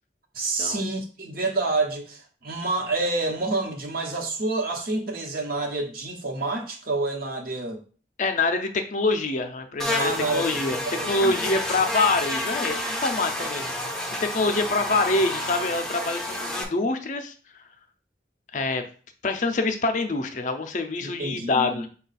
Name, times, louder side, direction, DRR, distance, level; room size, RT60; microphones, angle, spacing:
voice 1, 0.3-7.8 10.0-10.6 10.8-11.3 21.0-21.9, right 2 dB, 55° right, 2 dB, 1.0 m, -28 dB
voice 2, 8.2-10.8 11.1-13.7 14.2-17.3 18.5-18.8 19.2-21.9, left 3 dB, 45° left, 6 dB, 0.5 m, -25 dB
Buzz, 9.8-16.6, left 1 dB, 5° left, 0.6 m, -30 dB
5.4 x 2.3 x 4.0 m, 0.40 s
head